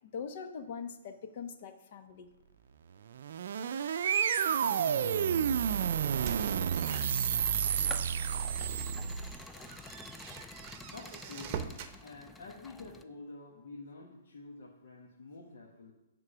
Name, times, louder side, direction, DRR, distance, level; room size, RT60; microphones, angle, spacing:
voice 1, 0.0-2.3, left 6 dB, 50° left, 8 dB, 0.9 m, -42 dB
sound 1, 3.1-9.4, right 8 dB, 65° right, 0.5 m, -30 dB
sound 2, 6.0-8.1 8.6-8.7 9.2-12.0, right 8 dB, 40° right, 0.8 m, -45 dB
sound 3, 6.9-13.0, left 3 dB, 10° left, 0.4 m, -49 dB
voice 2, 10.9-11.6 12.0-15.9, left 3 dB, 70° left, -2 dB, 1.4 m, -48 dB
9.8 x 3.7 x 6.1 m, 0.98 s
hypercardioid pair, 140°, 0 cm